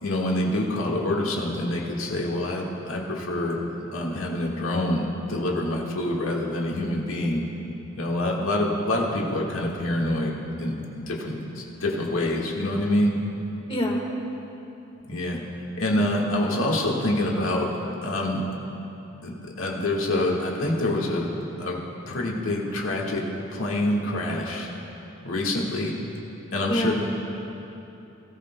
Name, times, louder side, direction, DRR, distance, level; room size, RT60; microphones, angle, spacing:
voice 1, 0.0-3.6 3.9-7.4 8.0-13.1 15.1-15.4 15.7-18.4 19.2-21.3 21.6-21.8 22.1-23.2 23.5-24.7 25.2-25.9 26.5-26.9, left 1 dB, 80° left, -2 dB, 1.6 m, -26 dB
voice 2, 13.7-14.1 26.7-26.9, equal, 25° left, 0 dB, 1.5 m, -25 dB
20.5 x 13.5 x 2.2 m, 2.9 s
head